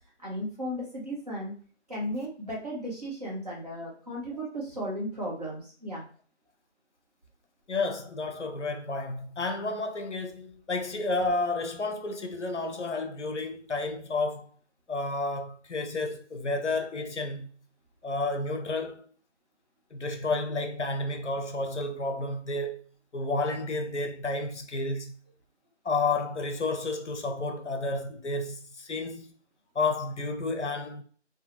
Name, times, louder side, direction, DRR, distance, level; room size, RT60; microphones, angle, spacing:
voice 1, 0.2-1.5 1.9-6.1, equal, 35° right, 1.0 m, -35 dB
voice 2, 7.7-14.5 14.9-17.5 18.0-19.1 19.9-22.8 23.1-25.1 25.8-29.3 29.7-31.0, left 3 dB, 70° left, 0.7 m, -31 dB
2.6 x 2.3 x 2.9 m
figure-of-eight pair, 165°, 36 cm